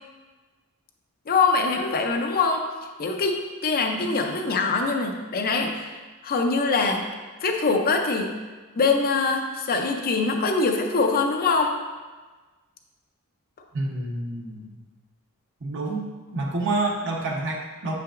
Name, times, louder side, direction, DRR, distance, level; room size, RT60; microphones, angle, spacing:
voice 1, 1.3-2.6 3.0-5.9 6.2-7.1 7.4-8.3 8.8-11.8, left 4 dB, 40° left, 3 dB, 0.5 m, -23 dB
voice 2, 13.7-14.8 15.6-16.1 16.3-17.9, right 2 dB, 55° right, -1 dB, 1.0 m, -28 dB
6.8 x 5.8 x 2.5 m, 1.3 s
head